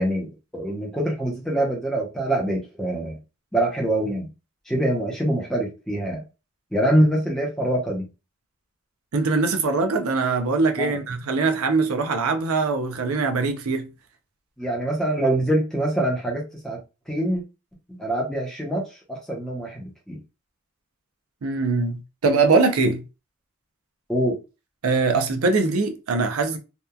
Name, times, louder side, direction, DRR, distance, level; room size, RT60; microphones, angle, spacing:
voice 1, 0.0-3.2 3.5-4.3 4.7-6.2 6.7-8.1 10.8-11.0 14.6-16.8 17.1-17.4 17.9-20.2 24.1-24.4, right 1 dB, ahead, 0.7 m, -24 dB
voice 2, 9.1-13.9 21.4-23.0 24.8-26.6, right 4 dB, 90° right, 0.5 m, -22 dB
2.9 x 2.2 x 2.2 m
head